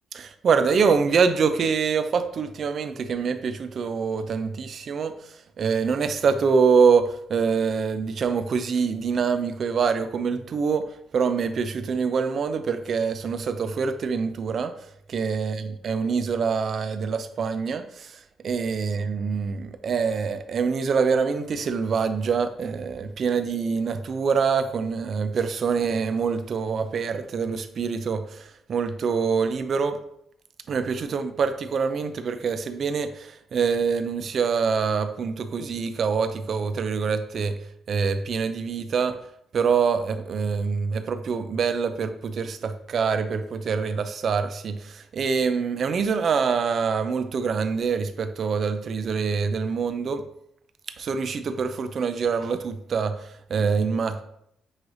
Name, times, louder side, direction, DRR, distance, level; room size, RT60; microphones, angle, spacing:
voice 1, 0.2-5.2 5.6-10.9 11.1-14.7 15.1-30.0 30.7-37.6 37.9-39.2 39.5-50.2 51.0-53.2 53.5-54.2, right 5 dB, 55° right, 9 dB, 0.4 m, -25 dB
6.1 x 3.1 x 2.6 m, 0.73 s
cardioid pair, 90°, 0 cm